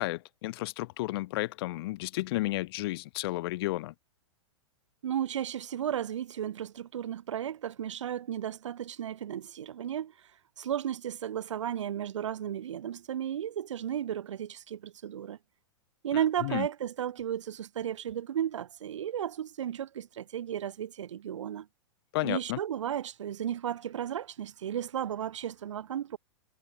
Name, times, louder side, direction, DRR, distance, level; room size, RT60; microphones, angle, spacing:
voice 1, 0.0-3.9 16.4-16.7 22.1-22.6, left 19 dB, 50° left, 0.5 m, -32 dB
voice 2, 5.0-10.1 10.6-15.4 16.0-21.7 22.2-26.2, right 10 dB, 75° right, 1.7 m, -34 dB
hypercardioid pair, 110°, 16 cm